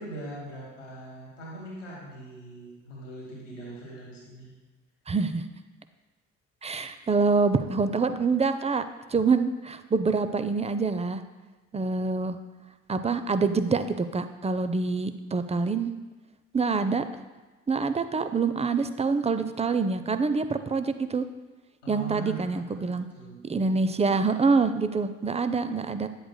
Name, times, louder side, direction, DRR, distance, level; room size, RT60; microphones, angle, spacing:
voice 1, 0.0-4.5 21.8-22.8 23.1-23.4, right 2 dB, 85° left, -4 dB, 1.9 m, -41 dB
voice 2, 5.1-5.4 6.6-8.8 9.1-11.2 11.7-12.4 12.9-15.9 16.5-17.0 17.7-21.2 21.9-23.1 23.4-26.1, right 4 dB, 20° right, 10 dB, 0.5 m, -26 dB
9.9 x 7.7 x 2.2 m, 1.2 s
figure-of-eight pair, 40°, 36 cm